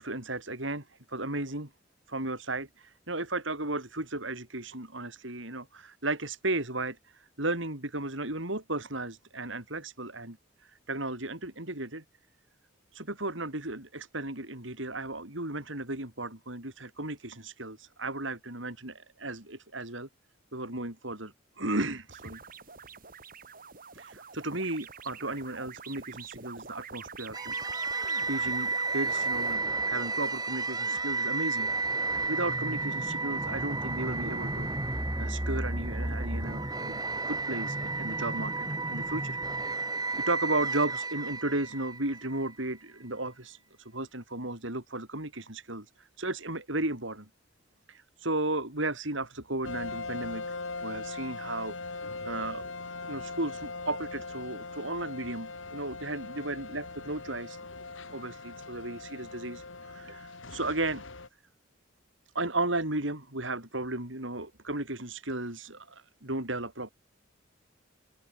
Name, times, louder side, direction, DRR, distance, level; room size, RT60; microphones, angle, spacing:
voice 1, 0.0-1.7 2.1-12.0 12.9-20.1 20.5-22.4 23.9-27.8 28.3-31.7 32.3-34.7 35.2-39.9 40.3-47.3 47.9-50.6 50.8-51.7 52.2-52.7 53.1-57.6 58.1-61.0 62.3-66.9, right 2 dB, 70° right, 5.6 m, -35 dB
sound 1, 22.1-29.6, right 5 dB, 45° right, 4.9 m, -46 dB
sound 2, 27.3-42.5, right 3 dB, 20° right, 2.3 m, -32 dB
sound 3, 49.6-61.3, left 3 dB, 75° left, 2.5 m, -40 dB
open air
head